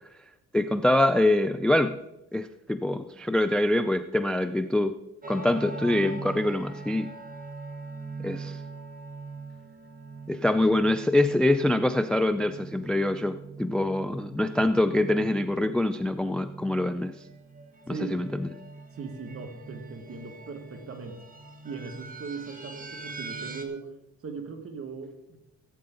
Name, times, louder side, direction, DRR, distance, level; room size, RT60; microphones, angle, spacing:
voice 1, 0.5-2.0 2.3-4.9 5.3-7.1 8.2-8.6 10.3-17.1 17.9-18.5, left 1 dB, 5° left, 11 dB, 0.3 m, -25 dB
sound 1, 5.2-23.7, right 3 dB, 25° right, 1.4 m, -42 dB
voice 2, 17.9-18.2 18.9-21.3 21.6-23.9 24.2-25.4, right 4 dB, 40° right, 5 dB, 1.8 m, -39 dB
15.5 x 8.6 x 3.8 m, 0.91 s
cardioid pair, 115°, 33 cm